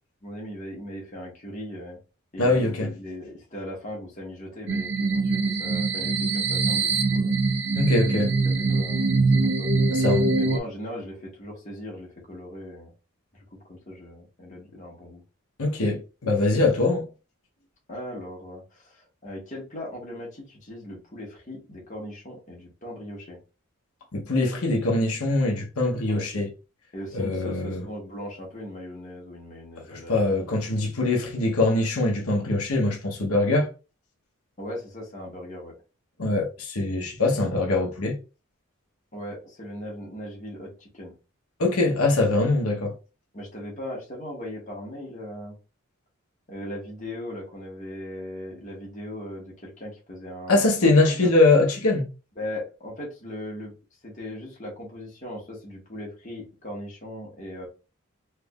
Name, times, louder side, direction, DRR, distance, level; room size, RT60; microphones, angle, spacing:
voice 1, 0.2-2.0 2.3-7.3 8.3-9.7 10.3-12.9 13.3-15.2 17.9-23.4 26.1-26.3 26.9-30.3 34.6-35.7 39.1-41.1 43.3-45.5 46.5-51.3 52.4-53.7 54.0-57.7, left 1 dB, 35° left, 1.4 m, -38 dB
voice 2, 2.4-2.9 7.8-8.3 9.9-10.4 15.6-17.0 24.1-26.5 27.1-27.8 29.9-33.7 36.2-38.2 41.6-42.9 50.5-52.1, left 2 dB, 90° left, 1.0 m, -23 dB
sound 1, 4.7-10.6, right 3 dB, 55° right, 0.6 m, -23 dB
3.5 x 3.3 x 2.4 m
head